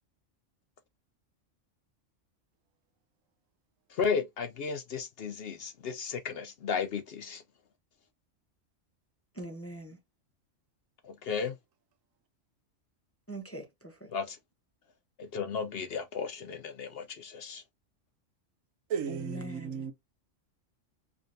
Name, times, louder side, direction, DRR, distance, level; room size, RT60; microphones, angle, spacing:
voice 1, 3.9-7.4 11.0-11.6 14.1-14.4 15.2-17.6, left 6 dB, 60° left, 0.7 m, -34 dB
voice 2, 9.3-10.0 13.3-14.1 19.1-19.9, right 1 dB, 15° left, 0.6 m, -42 dB
voice 3, 18.9-19.9, right 7 dB, 85° right, 1.1 m, -34 dB
4.9 x 2.6 x 2.6 m
omnidirectional pair, 1.3 m